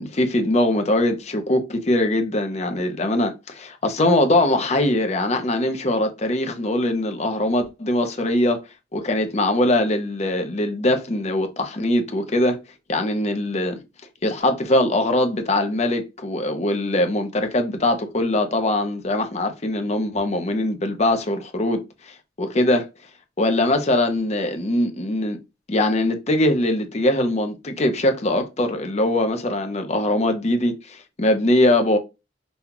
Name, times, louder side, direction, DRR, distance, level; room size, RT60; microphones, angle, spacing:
voice 1, 0.0-8.6 8.9-12.6 12.9-13.8 14.2-21.8 22.4-22.9 23.4-25.4 25.7-32.0, left 1 dB, 35° left, 0.7 m, -22 dB
5.4 x 2.3 x 2.9 m
head